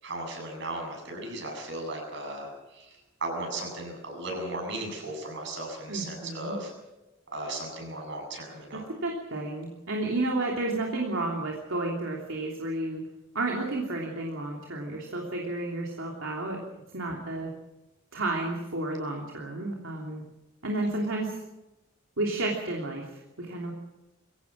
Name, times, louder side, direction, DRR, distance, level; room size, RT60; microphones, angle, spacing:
voice 1, 0.0-6.7 7.3-8.8, right 2 dB, 60° right, 2 dB, 7.8 m, -36 dB
voice 2, 5.9-6.6 8.7-13.0 13.3-16.6 16.9-17.5 18.1-20.2 20.6-21.4 22.2-23.7, right 2 dB, 80° right, -1 dB, 3.2 m, -31 dB
23.0 x 17.5 x 7.5 m, 1.0 s
head